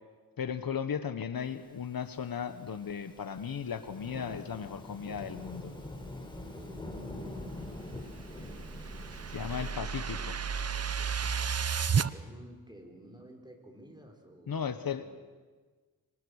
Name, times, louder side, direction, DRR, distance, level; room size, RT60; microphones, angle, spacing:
voice 1, 0.4-5.7 9.3-10.3 14.5-15.0, left 7 dB, 70° left, 11 dB, 1.2 m, -36 dB
Thunderstorm / Rain, 2.0-9.7, left 1 dB, 15° left, 5.1 m, -44 dB
voice 2, 6.5-6.9 8.1-8.8 9.5-10.8 12.1-15.1, right 1 dB, 10° right, 2 dB, 4.8 m, -53 dB
sound 1, 8.1-12.1, right 6 dB, 45° right, 0.8 m, -32 dB
26.5 x 25.0 x 6.5 m, 1.4 s
wide cardioid pair, 80°, 36 cm